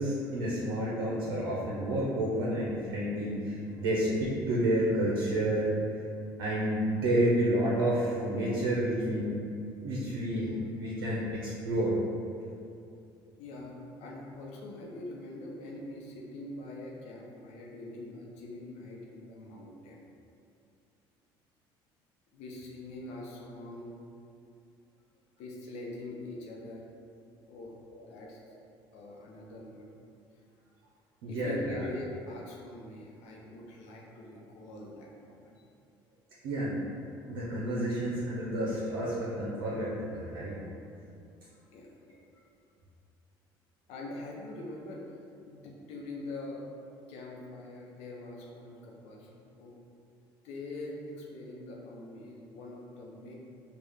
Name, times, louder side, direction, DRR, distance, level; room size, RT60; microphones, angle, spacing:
voice 1, 0.0-5.7 6.4-9.4 9.8-11.9 27.9-28.0 31.2-31.9 36.4-36.8 37.3-40.6, right 1 dB, 80° right, -7 dB, 0.8 m, -30 dB
voice 2, 13.4-20.1 22.3-24.0 25.4-26.8 27.5-27.8 28.0-28.5 28.9-29.9 31.3-35.6 41.7-42.1 43.9-45.2 45.5-46.6 47.1-49.8 50.4-53.3, left 2 dB, 70° left, -2 dB, 0.8 m, -43 dB
4.5 x 2.4 x 3.5 m, 2.5 s
hypercardioid pair, 70°, 12 cm